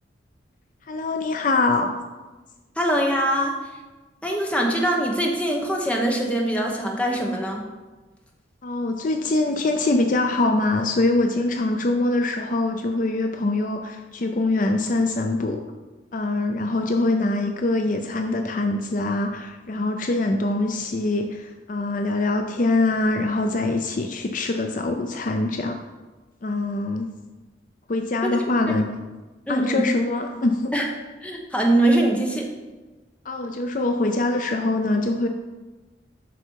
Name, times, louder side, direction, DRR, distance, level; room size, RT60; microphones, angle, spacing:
voice 1, 0.9-2.0 8.6-15.6 16.1-25.8 26.4-27.1 27.9-28.9 29.5-30.7 33.3-35.3, left 2 dB, 45° left, 5 dB, 0.5 m, -23 dB
voice 2, 2.8-3.5 4.2-7.6 28.7-28.8 29.5-29.9 30.7-30.9 31.2-32.5, right 1 dB, 5° left, 0 dB, 0.9 m, -22 dB
8.0 x 5.9 x 4.5 m, 1.2 s
head